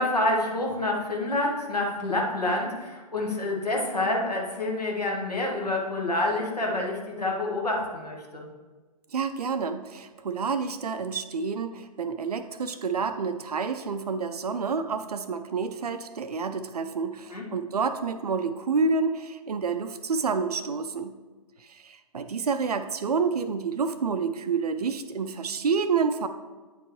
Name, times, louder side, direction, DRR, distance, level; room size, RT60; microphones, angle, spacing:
voice 1, 0.0-8.5 17.3-17.4, left 2 dB, 85° left, -1 dB, 1.4 m, -27 dB
voice 2, 9.1-21.1 21.6-26.3, right 5 dB, 75° right, 9 dB, 0.4 m, -29 dB
8.8 x 4.6 x 3.0 m, 1.3 s
figure-of-eight pair, 120°, 20 cm